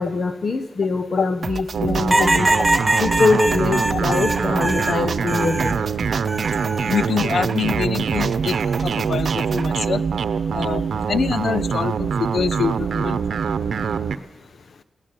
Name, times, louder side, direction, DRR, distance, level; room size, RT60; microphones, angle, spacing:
voice 1, 0.0-2.5 3.0-5.8, left 3 dB, 45° left, 8 dB, 1.0 m, -23 dB
sound 1, 1.4-9.7, right 5 dB, 50° right, 0.6 m, -32 dB
sound 2, 1.7-14.2, right 6 dB, 75° right, 0.9 m, -24 dB
sound 3, 2.1-5.8 6.3-7.1 8.4-8.9, right 1 dB, 15° right, 0.8 m, -23 dB
voice 2, 6.9-8.5 8.8-10.0 10.5-13.2, left 6 dB, 65° left, 17 dB, 0.6 m, -25 dB
21.5 x 17.5 x 6.9 m, 1.2 s
wide cardioid pair, 105°, 0 cm